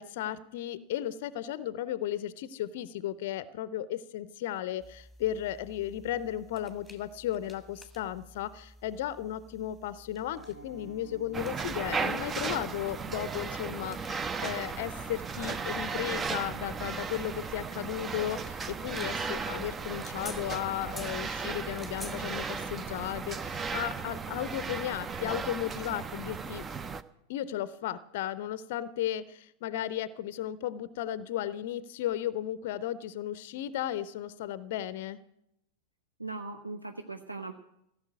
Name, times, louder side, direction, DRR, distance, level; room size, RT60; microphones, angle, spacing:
voice 1, 0.0-26.6 27.3-35.2, left 12 dB, 50° left, 17 dB, 0.5 m, -35 dB
sound 1, 4.8-23.6, equal, 5° right, 1.7 m, -52 dB
Piano, 10.3-21.2 21.5-21.7 22.0-22.2 22.5-22.8 23.1-23.2, right 4 dB, 55° right, 4.4 m, -55 dB
sound 2, 11.3-27.0, right 5 dB, 20° right, 0.5 m, -36 dB
voice 2, 36.2-37.5, right 3 dB, 85° right, 6 dB, 0.7 m, -39 dB
16.0 x 6.8 x 9.2 m, 0.81 s
figure-of-eight pair, 90°, 0 cm